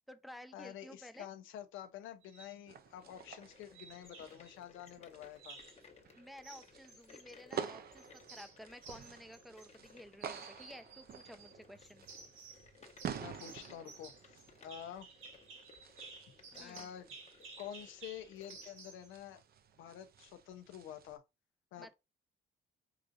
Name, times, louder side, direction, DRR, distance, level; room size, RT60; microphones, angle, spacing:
voice 1, 0.0-1.3 6.1-12.1 16.5-16.9 21.8-21.9, equal, ahead, 0.5 m, -53 dB
voice 2, 0.5-5.6 13.1-15.1 16.5-17.0 17.6-19.4 19.8-21.2 21.7-21.9, left 10 dB, 90° left, 0.6 m, -49 dB
sound 1, 2.2-2.6 3.7-4.5 5.4-5.8 6.4-7.7 8.0-9.9 10.2-11.5 12.1-12.7 13.0-19.1, right 4 dB, 85° right, 1.3 m, -54 dB
sound 2, 2.7-21.2, right 8 dB, 50° right, 0.5 m, -50 dB
sound 3, 2.9-18.7, left 5 dB, 35° left, 0.9 m, -61 dB
4.7 x 2.6 x 2.5 m
cardioid pair, 90°, 20 cm